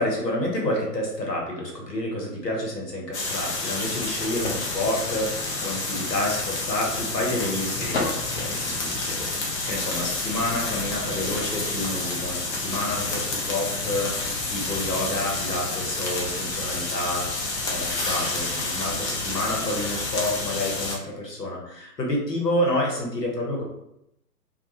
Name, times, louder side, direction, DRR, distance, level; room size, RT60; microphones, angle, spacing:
voice 1, 0.0-23.6, left 1 dB, 85° left, -2 dB, 1.0 m, -29 dB
sound 1, 3.1-21.0, left 2 dB, 45° left, 0.7 m, -29 dB
2.3 x 2.2 x 2.8 m, 0.83 s
figure-of-eight pair, 120°, 48 cm